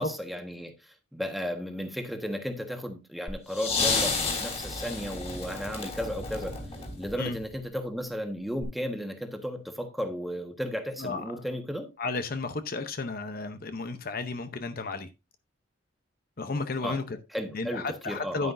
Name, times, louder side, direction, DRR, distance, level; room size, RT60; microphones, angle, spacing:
voice 1, 0.0-6.6 7.0-11.9 16.8-17.0 17.3-18.5, equal, ahead, 1.4 m, -34 dB
sound 1, 3.3-7.5 8.6-8.7, left 4 dB, 30° left, 3.4 m, -31 dB
voice 2, 12.0-15.1 16.4-17.2 17.5-18.5, left 3 dB, 45° left, 0.7 m, -33 dB
10.0 x 9.5 x 2.6 m
head